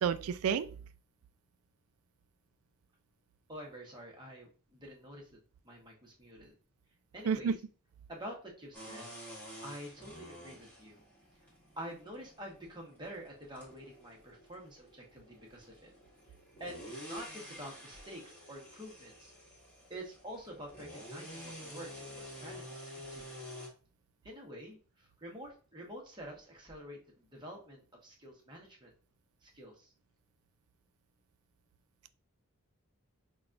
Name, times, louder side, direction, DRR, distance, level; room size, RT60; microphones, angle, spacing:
voice 1, 0.0-0.7 7.3-7.6, right 7 dB, 80° right, 0.3 m, -30 dB
voice 2, 3.5-5.3 5.6-6.5 7.1-7.6 8.1-9.1 9.6-11.0 11.8-15.9 16.6-19.3 19.9-23.4 24.2-28.9 29.4-29.9, equal, 20° right, 1.0 m, -48 dB
sound 1, 8.7-23.7, equal, 10° left, 1.3 m, -49 dB
5.8 x 2.3 x 2.5 m
head